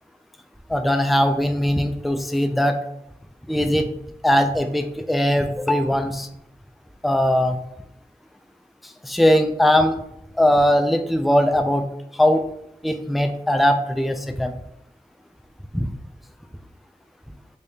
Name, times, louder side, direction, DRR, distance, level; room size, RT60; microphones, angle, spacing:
voice 1, 0.7-2.8 3.5-3.9 4.2-6.3 7.0-7.6 9.0-10.0 10.4-11.9 12.2-12.4 12.8-14.5 15.7-15.9, equal, ahead, 7 dB, 0.3 m, -20 dB
3.4 x 3.2 x 2.7 m, 0.77 s
wide cardioid pair, 50°, 16 cm